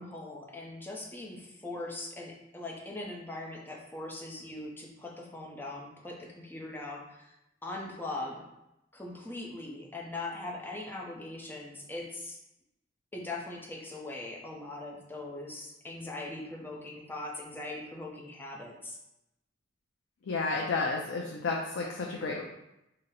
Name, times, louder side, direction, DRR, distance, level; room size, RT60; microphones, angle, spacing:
voice 1, 0.0-7.4 7.6-8.4 8.9-12.4 13.1-19.0, left 2 dB, 10° left, -2 dB, 0.6 m, -41 dB
voice 2, 20.3-22.4, left 3 dB, 85° left, -1 dB, 0.5 m, -31 dB
3.8 x 2.1 x 4.2 m, 0.89 s
head